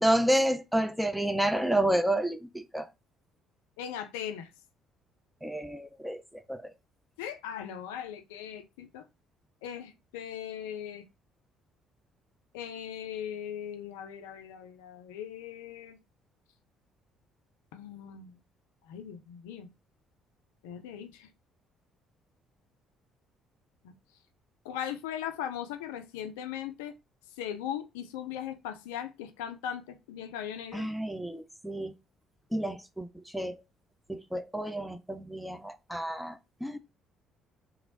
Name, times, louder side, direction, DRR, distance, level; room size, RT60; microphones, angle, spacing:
voice 1, 0.0-2.9 5.4-6.2 6.5-6.6 30.7-31.9 32.5-33.6 34.1-36.8, right 1 dB, ahead, 0.4 m, -30 dB
voice 2, 3.8-4.5 7.2-9.0 9.6-11.0 12.5-16.0 17.7-18.4 18.8-19.7 20.6-21.3 23.8-23.9 24.6-26.9 27.4-30.9, left 9 dB, 70° left, 0.3 m, -39 dB
3.0 x 2.4 x 2.6 m
figure-of-eight pair, 50°, 0 cm